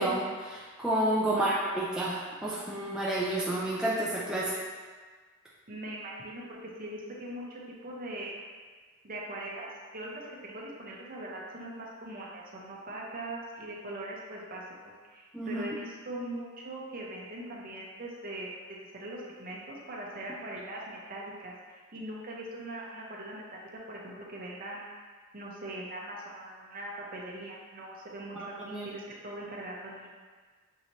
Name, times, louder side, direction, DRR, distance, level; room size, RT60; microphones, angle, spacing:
voice 1, 0.0-4.6 15.3-15.6 28.4-28.9, right 1 dB, 5° right, -7 dB, 0.4 m, -30 dB
voice 2, 1.3-1.6 5.7-8.4 9.0-24.9 25.3-30.2, right 1 dB, 40° right, -3 dB, 0.7 m, -41 dB
5.5 x 3.0 x 2.7 m, 1.5 s
head